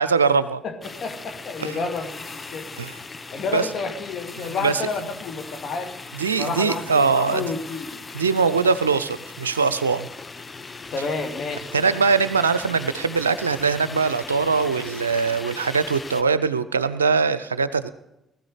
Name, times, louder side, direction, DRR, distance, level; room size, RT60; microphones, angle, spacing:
voice 1, 0.0-0.6 1.6-1.8 2.8-3.0 3.5-3.7 4.4-4.8 6.2-7.4 8.1-10.1 11.7-17.9, right 5 dB, 90° right, 14 dB, 0.4 m, -22 dB
voice 2, 0.6-2.7 3.3-5.9 6.3-8.0 10.9-11.7, left 4 dB, 55° left, 7 dB, 2.7 m, -30 dB
sound 1, 0.8-16.2, left 4 dB, 30° left, 0.9 m, -39 dB
19.5 x 13.5 x 5.0 m, 0.89 s
hypercardioid pair, 50°, 0 cm